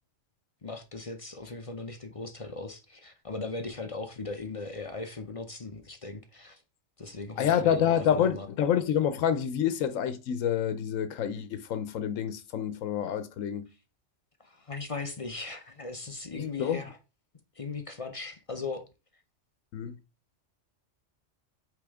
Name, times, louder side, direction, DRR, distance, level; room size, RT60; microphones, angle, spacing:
voice 1, 0.6-6.6 7.0-8.5 14.4-17.0 17.6-18.8, left 3 dB, 35° left, 0.6 m, -38 dB
voice 2, 7.4-13.7 16.6-16.8 19.7-20.0, left 9 dB, 90° left, 1.1 m, -27 dB
8.4 x 3.5 x 3.5 m
omnidirectional pair, 1.3 m